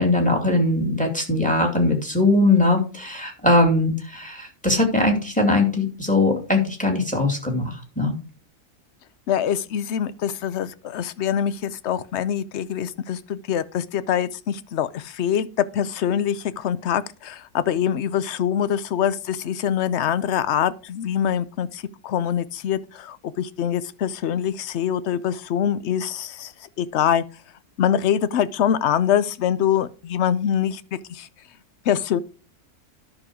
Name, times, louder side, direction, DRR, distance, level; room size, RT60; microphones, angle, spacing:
voice 1, 0.0-8.1, left 2 dB, 5° left, 2.6 m, -20 dB
voice 2, 9.3-26.5 26.8-27.2 27.8-31.3 31.9-32.2, left 9 dB, 60° left, 0.8 m, -24 dB
10.5 x 6.2 x 4.8 m
omnidirectional pair, 1.6 m